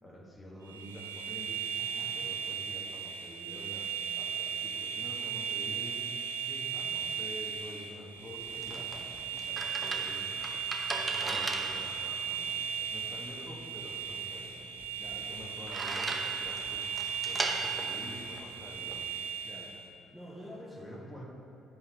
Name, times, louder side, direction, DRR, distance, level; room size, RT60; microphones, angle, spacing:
voice 1, 0.0-1.7 2.1-6.1 6.7-10.2 10.9-12.6 12.9-14.5 15.2-16.9 17.2-19.1 20.7-21.2, equal, 25° left, -2 dB, 1.6 m, -48 dB
sound 1, 0.7-19.9, right 7 dB, 85° right, 0.3 m, -36 dB
voice 2, 1.8-2.2 6.4-6.7 13.0-13.2 15.0-15.2 19.4-19.7 20.1-21.0, left 1 dB, ahead, -6 dB, 1.1 m, -48 dB
sound 2, 8.2-19.0, right 2 dB, 25° right, 0.8 m, -39 dB
9.7 x 3.6 x 4.6 m, 2.9 s
figure-of-eight pair, 45°, 0 cm